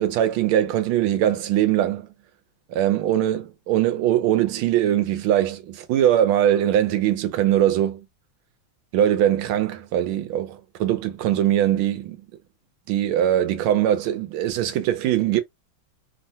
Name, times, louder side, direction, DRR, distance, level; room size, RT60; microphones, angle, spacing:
voice 1, 0.0-2.1 2.7-8.0 8.9-12.2 12.9-15.4, right 11 dB, 90° right, 1.5 m, -21 dB
3.6 x 2.1 x 2.7 m
omnidirectional pair, 2.2 m